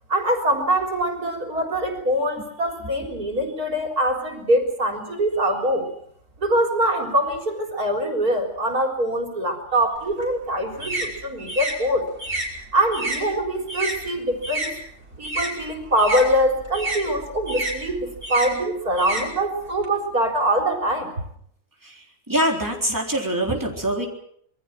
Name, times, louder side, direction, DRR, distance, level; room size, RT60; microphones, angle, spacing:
voice 1, 0.1-5.9 6.4-12.1 12.7-14.8 15.2-21.1, right 1 dB, 85° right, 3 dB, 4.4 m, -23 dB
sound 1, 10.0-14.7 15.0-19.9, right 2 dB, 45° right, 5.8 m, -30 dB
voice 2, 21.8-24.1, right 1 dB, 10° right, 0 dB, 3.9 m, -24 dB
26.5 x 22.5 x 6.1 m, 0.67 s
omnidirectional pair, 1.6 m